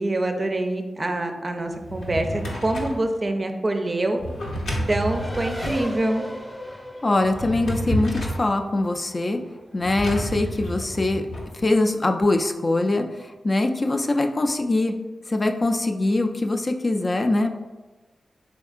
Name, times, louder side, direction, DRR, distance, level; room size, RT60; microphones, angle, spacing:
voice 1, 0.0-4.2 4.9-6.2, right 1 dB, 45° right, 5 dB, 0.4 m, -25 dB
Drawer open or close, 1.7-3.0 4.2-5.8 7.2-8.5 9.8-11.5, equal, 90° left, 0.7 m, -30 dB
Race car auto racing, 5.0-10.0, equal, 15° left, 0.7 m, -38 dB
voice 2, 7.0-9.4 9.7-11.2 11.5-14.9 15.3-17.5, left 2 dB, 40° left, 5 dB, 0.3 m, -23 dB
3.6 x 3.5 x 2.4 m, 1.2 s
cardioid pair, 45°, 0 cm